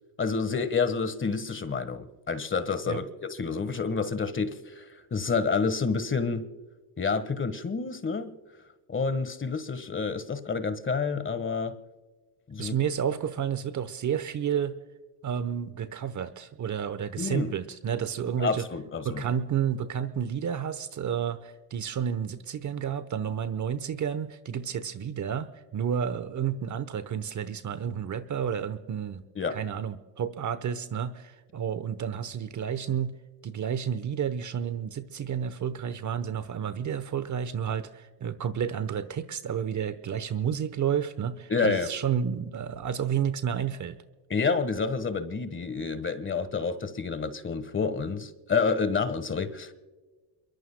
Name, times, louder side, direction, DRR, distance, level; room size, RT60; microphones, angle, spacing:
voice 1, 0.2-6.5 7.0-8.3 8.9-11.7 12.5-12.8 17.2-17.5 18.4-19.2 29.3-29.6 41.5-41.9 44.3-49.7, left 5 dB, 25° left, 1.4 m, -29 dB
voice 2, 12.6-14.8 15.2-18.7 19.0-29.2 29.5-33.1 33.4-44.0, right 8 dB, 40° right, 1.0 m, -31 dB
28.5 x 22.5 x 2.2 m
supercardioid pair, 90°, 48 cm